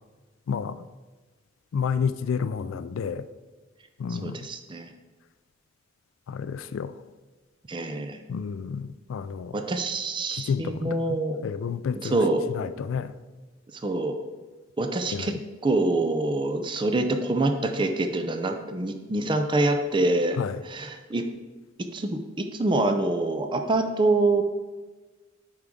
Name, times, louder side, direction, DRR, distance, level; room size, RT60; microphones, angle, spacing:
voice 1, 1.7-3.2 4.0-4.4 6.3-6.9 8.3-9.6 10.3-11.0 11.4-12.2 12.6-13.1 15.1-15.4 20.4-20.6, left 6 dB, 90° left, 13 dB, 0.3 m, -30 dB
voice 2, 4.1-4.9 7.7-8.2 9.5-11.4 12.0-12.5 13.8-14.2 14.8-15.3 15.6-20.4 20.6-21.3 21.9-24.4, right 2 dB, 25° right, 6 dB, 0.5 m, -25 dB
10.5 x 4.7 x 3.7 m, 1.3 s
head